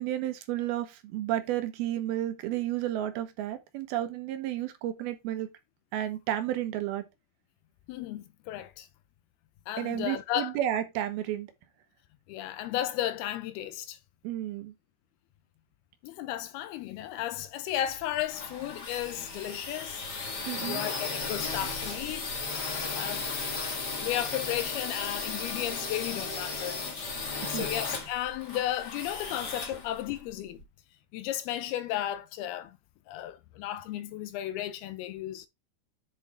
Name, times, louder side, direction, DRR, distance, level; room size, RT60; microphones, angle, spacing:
voice 1, 0.0-5.5 5.9-7.1 9.8-11.5 14.2-14.7 20.5-20.8 27.4-27.7, right 12 dB, 75° right, 3.0 m, -32 dB
voice 2, 7.9-8.9 9.7-10.6 12.3-14.0 16.0-20.0 20.7-22.3 22.9-23.3 24.0-26.8 27.5-30.6 31.1-32.8 33.1-35.5, left 12 dB, 80° left, 2.6 m, -34 dB
sound 1, 17.9-30.6, left 4 dB, 35° left, 1.8 m, -35 dB
8.0 x 6.4 x 3.1 m
omnidirectional pair, 4.5 m